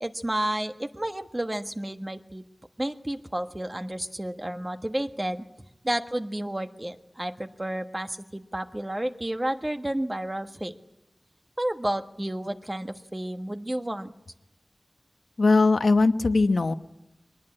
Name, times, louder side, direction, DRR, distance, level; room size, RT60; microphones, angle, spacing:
voice 1, 0.0-2.4 2.8-5.4 5.8-10.7 11.6-14.1, right 1 dB, 25° right, 6 dB, 1.5 m, -31 dB
voice 2, 15.4-16.7, left 3 dB, 80° left, 9 dB, 1.0 m, -20 dB
23.0 x 19.5 x 9.9 m, 0.93 s
wide cardioid pair, 55°, 0 cm